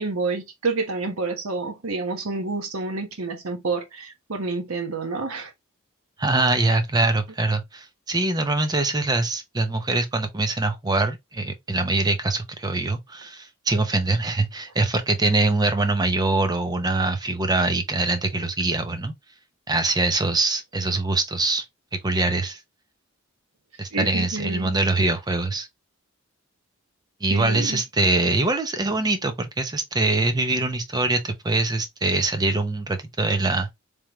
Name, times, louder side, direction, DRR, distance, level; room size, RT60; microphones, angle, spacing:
voice 1, 0.0-5.5 23.9-24.7 27.3-27.8, right 3 dB, 85° right, 1.1 m, -28 dB
voice 2, 6.2-19.1 19.7-21.6 22.0-22.6 23.8-25.7 27.2-33.7, right 2 dB, 20° right, 0.7 m, -23 dB
3.6 x 3.3 x 3.0 m
head